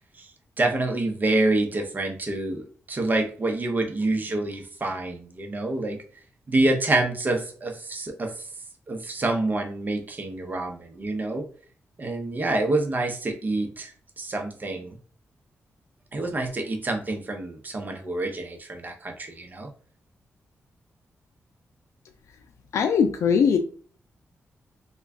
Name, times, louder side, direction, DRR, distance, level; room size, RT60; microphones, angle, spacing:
voice 1, 0.1-6.0 6.5-8.5 8.9-11.5 12.0-15.0 16.1-19.7, right 2 dB, 35° right, 3 dB, 0.7 m, -27 dB
voice 2, 22.7-23.6, left 6 dB, 80° left, 6 dB, 0.3 m, -20 dB
3.3 x 2.3 x 3.5 m, 0.43 s
cardioid pair, 100°, 5 cm